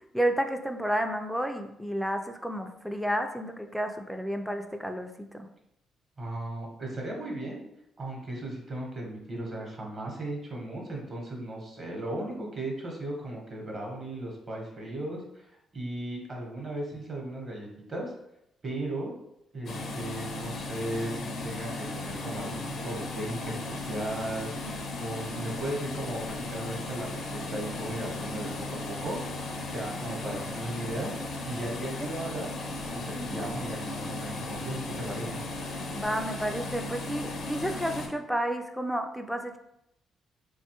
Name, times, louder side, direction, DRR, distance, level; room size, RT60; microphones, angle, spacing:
voice 1, 0.1-5.5 32.0-32.1 33.2-33.5 35.9-39.6, right 1 dB, ahead, 5 dB, 0.3 m, -31 dB
voice 2, 6.2-7.6 8.0-15.5 15.7-18.1 18.6-19.1 19.5-24.7 25.0-29.2 29.4-31.1 31.5-32.5 32.9-35.4, right 1 dB, 40° right, -1 dB, 0.9 m, -36 dB
sound 1, 19.7-38.1, left 2 dB, 60° left, 0.5 m, -36 dB
3.0 x 2.2 x 2.9 m, 0.81 s
cardioid pair, 90°, 0 cm